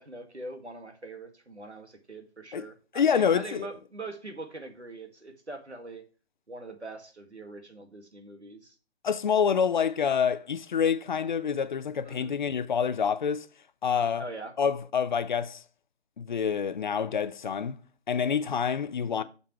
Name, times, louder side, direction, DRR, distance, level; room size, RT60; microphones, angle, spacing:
voice 1, 0.0-6.0 6.5-8.7 12.1-12.4 14.2-14.5 19.1-19.2, right 2 dB, 85° right, 2.1 m, -42 dB
voice 2, 2.9-3.7 9.0-13.5 13.8-14.3 14.6-15.6 16.2-17.8 18.1-19.2, left 7 dB, 45° left, 0.6 m, -27 dB
8.7 x 6.8 x 3.2 m
figure-of-eight pair, 135°, 33 cm